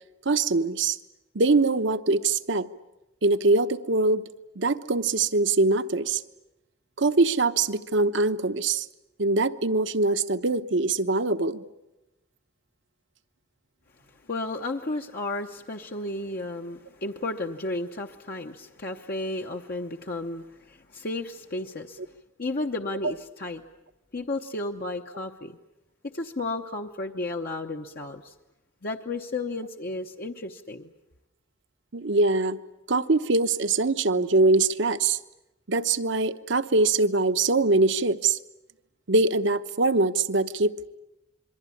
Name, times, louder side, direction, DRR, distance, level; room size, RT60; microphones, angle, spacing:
voice 1, 0.2-1.0 1.3-2.7 3.2-4.3 4.6-6.2 7.0-8.9 9.2-11.6 31.9-32.6 32.9-35.2 35.7-38.4 39.1-40.9, right 3 dB, 65° right, 10 dB, 1.0 m, -23 dB
voice 2, 14.3-22.0 22.4-23.6 24.1-25.6 26.1-28.3 28.8-30.9, left 2 dB, 45° left, 2 dB, 0.9 m, -33 dB
27.0 x 23.0 x 8.5 m, 0.94 s
head